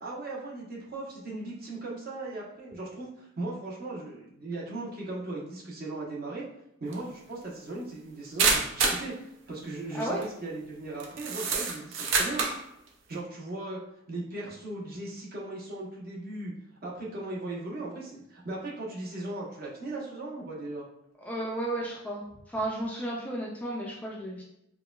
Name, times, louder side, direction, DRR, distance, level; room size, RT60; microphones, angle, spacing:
voice 1, 0.0-6.5 6.8-12.4 13.1-13.8 14.1-16.5 16.8-20.8, right 2 dB, 45° right, -4 dB, 0.9 m, -38 dB
sound 1, 6.9-7.0 8.4-9.1 10.0-10.2 11.0-12.6, right 4 dB, 65° right, 0.5 m, -26 dB
voice 2, 21.3-22.2 22.5-24.4, right 1 dB, 5° left, -4 dB, 0.3 m, -33 dB
4.6 x 2.3 x 2.3 m, 0.79 s
head